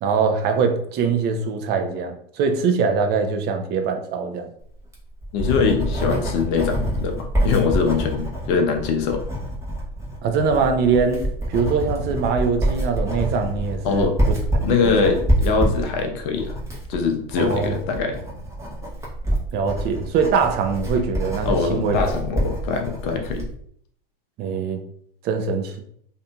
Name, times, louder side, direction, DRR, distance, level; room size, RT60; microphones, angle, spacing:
voice 1, 0.0-4.5 10.2-11.2 11.5-14.1 14.8-15.2 17.4-17.7 19.5-22.0 24.4-24.8 25.2-25.8, right 5 dB, 35° right, 5 dB, 0.5 m, -22 dB
Writing, 4.8-23.5, right 1 dB, 10° right, 0.9 m, -26 dB
voice 2, 5.3-9.2 13.8-14.1 14.6-16.6 16.9-18.2 21.4-23.4, left 5 dB, 55° left, 4 dB, 0.7 m, -22 dB
2.7 x 2.6 x 2.2 m, 0.65 s
hypercardioid pair, 95°, 29 cm